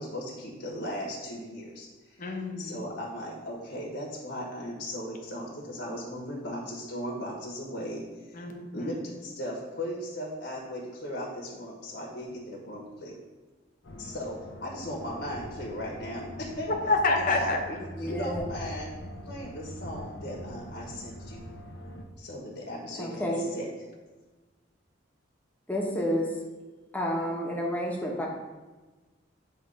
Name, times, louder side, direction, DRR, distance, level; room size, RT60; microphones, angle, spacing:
voice 1, 0.0-1.9 2.6-8.4 8.7-13.2 14.0-16.7 17.3-18.9 19.3-21.4 22.2-23.7, equal, 70° left, 1.3 m, -37 dB
voice 2, 2.2-2.8 8.3-8.9 16.7-17.6, left 3 dB, 45° left, 0.9 m, -27 dB
sound 1, 13.8-22.0, equal, 85° left, 0.8 m, -42 dB
voice 3, 18.0-18.4 23.0-23.4 25.7-26.4 26.9-28.3, equal, 10° left, 1.1 m, -30 dB
8.1 x 3.2 x 4.9 m
head